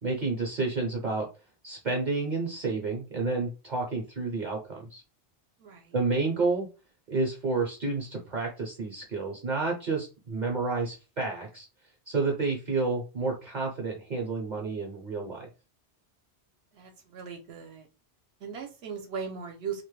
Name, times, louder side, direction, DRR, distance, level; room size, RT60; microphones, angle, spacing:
voice 1, 0.0-1.3 1.6-5.0 5.9-6.7 7.1-11.6 12.1-15.5, right 3 dB, 50° right, 0 dB, 0.7 m, -30 dB
voice 2, 5.6-6.0 16.7-17.9 18.4-19.8, right 6 dB, 75° right, 3 dB, 0.8 m, -38 dB
2.2 x 2.1 x 3.0 m, 0.31 s
omnidirectional pair, 1.2 m